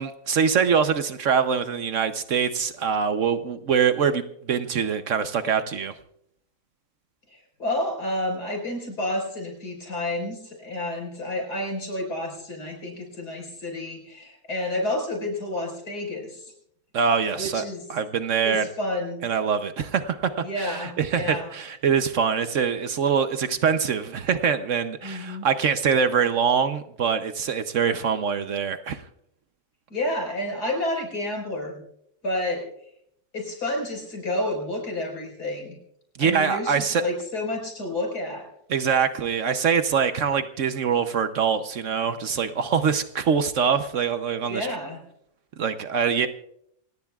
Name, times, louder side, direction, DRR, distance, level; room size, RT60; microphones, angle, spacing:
voice 1, 0.0-5.9 16.9-17.6 17.9-18.7 19.2-29.0 36.2-37.0 38.7-44.7 45.6-46.3, right 6 dB, 60° right, 10 dB, 1.0 m, -24 dB
voice 2, 7.3-16.5 17.4-17.8 18.4-19.2 20.4-21.5 25.0-25.5 29.9-31.8 32.2-32.6 33.3-35.8 36.2-38.5 44.5-45.0, left 1 dB, 80° left, 1 dB, 5.5 m, -30 dB
27.5 x 17.5 x 2.4 m, 0.72 s
omnidirectional pair, 1.7 m